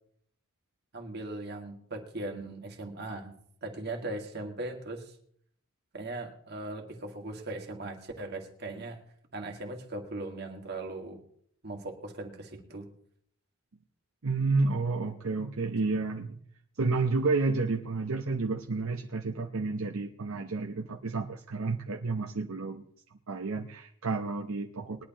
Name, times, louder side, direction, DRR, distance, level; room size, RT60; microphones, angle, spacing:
voice 1, 0.9-5.1 5.9-9.0 9.3-11.2 11.6-12.9 24.8-24.9, right 2 dB, 45° right, 2 dB, 1.8 m, -39 dB
voice 2, 14.2-16.4 16.8-22.8 23.3-25.0, right 3 dB, 65° right, 1 dB, 0.8 m, -30 dB
20.0 x 11.5 x 2.9 m, 0.64 s
head